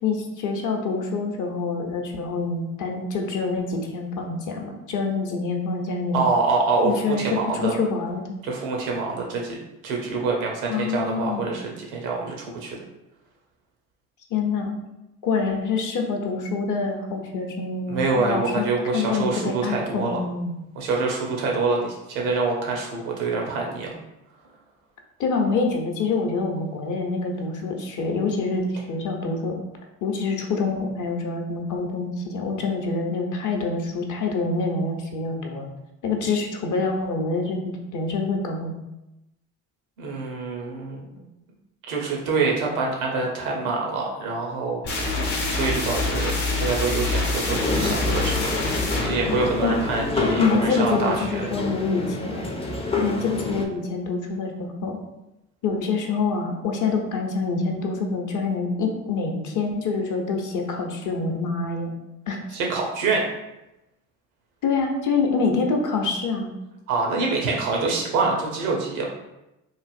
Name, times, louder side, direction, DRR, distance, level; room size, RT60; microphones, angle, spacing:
voice 1, 0.0-6.2 6.8-7.3 7.6-8.4 10.7-11.5 14.3-14.8 15.2-18.7 18.9-20.5 25.2-29.6 30.0-35.7 36.0-38.8 49.6-49.8 50.4-52.5 53.0-55.0 55.6-61.9 62.3-62.4 64.6-66.5, left 4 dB, 45° left, 2 dB, 0.7 m, -26 dB
voice 2, 6.1-7.7 8.4-9.6 9.8-12.7 17.9-20.2 20.7-23.9 40.0-41.2 41.9-45.1 45.5-46.3 46.6-48.5 49.0-51.5 62.5-63.3 66.9-69.1, right 3 dB, 85° right, 0 dB, 0.7 m, -25 dB
sound 1, 44.8-50.5, left 2 dB, 80° left, 0.8 m, -26 dB
sound 2, 47.4-53.7, left 2 dB, 15° left, 0.4 m, -28 dB
3.2 x 2.5 x 2.4 m, 0.94 s
hypercardioid pair, 50°, 41 cm